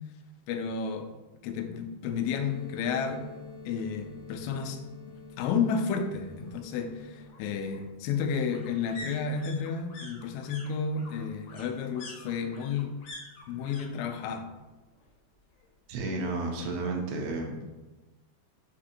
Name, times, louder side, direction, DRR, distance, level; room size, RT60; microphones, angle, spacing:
voice 1, 0.5-1.1 1.4-3.3 3.7-4.8 5.4-12.9 13.5-14.5, left 6 dB, 90° left, 5 dB, 2.8 m, -31 dB
sound 1, 2.3-7.3, left 4 dB, 55° left, 1.6 m, -47 dB
sound 2, 3.5-3.6 3.8-4.8 6.1-13.8 14.1-14.7 14.9-16.0 16.3-16.4, left 2 dB, 70° left, 3.0 m, -48 dB
voice 2, 15.9-17.8, right 2 dB, 80° right, 1 dB, 2.6 m, -32 dB
6.6 x 2.8 x 2.4 m, 1.1 s
omnidirectional pair, 4.9 m